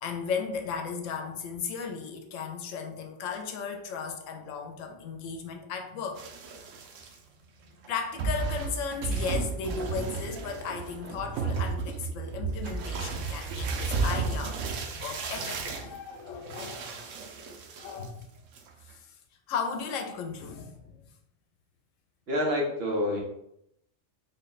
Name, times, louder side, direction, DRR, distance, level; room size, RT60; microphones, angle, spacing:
voice 1, 0.0-6.2 7.9-14.6 14.9-16.9 17.8-18.2 18.9-19.1 19.5-21.1, left 5 dB, 80° left, 4 dB, 1.0 m, -35 dB
sound 1, 6.2-7.1 7.8-7.9 8.2-18.2 18.6-18.9, right 4 dB, 80° right, 1.0 m, -33 dB
voice 2, 22.3-23.2, left 1 dB, 55° right, -1 dB, 1.0 m, -27 dB
3.7 x 2.2 x 3.9 m, 0.77 s
omnidirectional pair, 1.3 m